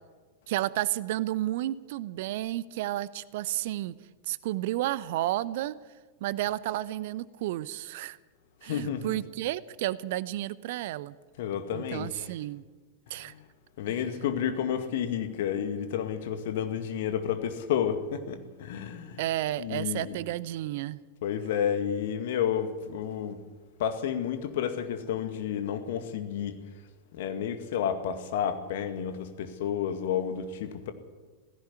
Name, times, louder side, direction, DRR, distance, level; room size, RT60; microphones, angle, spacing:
voice 1, 0.5-3.9 4.3-5.8 6.2-8.2 8.6-11.1 11.7-12.6 13.1-13.3 19.2-21.0, right 15 dB, 50° right, 19 dB, 0.7 m, -31 dB
voice 2, 8.6-9.2 11.4-12.3 13.1-13.4 13.8-19.2 19.6-20.2 21.2-23.4 23.8-26.6 27.1-30.9, left 8 dB, 55° left, 8 dB, 2.1 m, -31 dB
17.0 x 16.0 x 9.7 m, 1.3 s
figure-of-eight pair, 90°, 0 cm